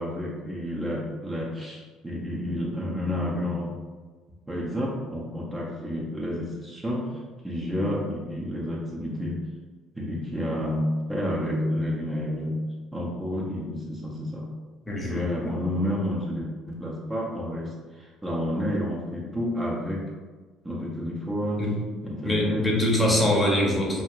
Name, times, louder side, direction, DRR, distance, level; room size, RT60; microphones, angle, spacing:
voice 1, 0.0-3.8 4.5-9.4 9.9-12.7 12.9-14.5 15.1-20.1 20.6-21.7 22.0-22.7 23.0-23.2, equal, 15° right, -4 dB, 0.6 m, -30 dB
voice 2, 14.9-15.6 21.6-21.8 22.2-24.0, left 1 dB, 20° left, -2 dB, 0.8 m, -24 dB
2.4 x 2.1 x 3.0 m, 1.4 s
hypercardioid pair, 65°, 0 cm